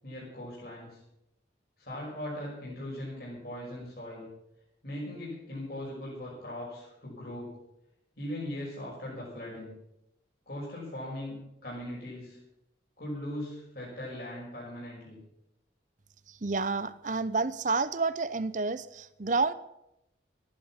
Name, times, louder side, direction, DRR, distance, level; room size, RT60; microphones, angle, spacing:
voice 1, 0.0-1.0 1.8-4.3 4.8-7.5 8.2-9.8 10.5-12.4 13.0-15.2, left 1 dB, 55° left, -5 dB, 5.8 m, -39 dB
voice 2, 16.4-19.5, right 3 dB, 45° right, 16 dB, 0.7 m, -29 dB
14.5 x 11.5 x 7.4 m, 0.86 s
head